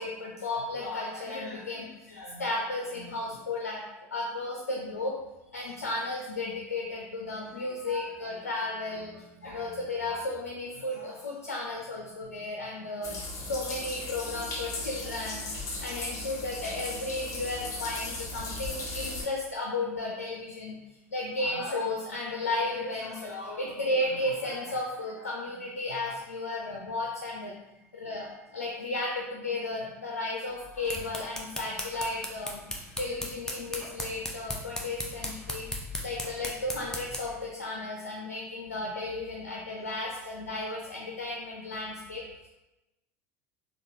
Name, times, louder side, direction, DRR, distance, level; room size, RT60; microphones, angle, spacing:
voice 1, 0.0-3.8 4.1-5.2 5.5-15.5 15.8-20.8 21.1-27.5 27.9-32.6 33.0-35.7 36.0-42.5, left 2 dB, 85° left, -2 dB, 0.4 m, -34 dB
sound 1, 13.0-19.2, left 2 dB, 45° left, 0.8 m, -37 dB
sound 2, 30.6-37.4, left 1 dB, 5° left, 0.6 m, -38 dB
3.7 x 2.3 x 2.6 m, 1.0 s
hypercardioid pair, 75°, 8 cm